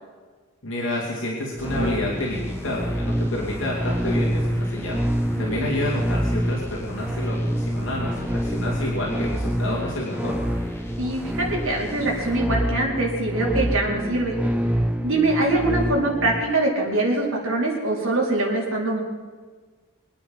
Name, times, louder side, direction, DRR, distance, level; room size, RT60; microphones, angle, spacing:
voice 1, 0.6-10.4, left 1 dB, 65° left, -4 dB, 2.9 m, -29 dB
sound 1, 1.6-12.4, equal, 10° left, 1.6 m, -38 dB
sound 2, 1.6-16.4, equal, 5° right, 0.4 m, -27 dB
voice 2, 5.4-5.8 11.0-14.3 15.0-19.0, right 2 dB, 80° right, -2 dB, 4.6 m, -23 dB
25.0 x 9.3 x 5.6 m, 1.4 s
head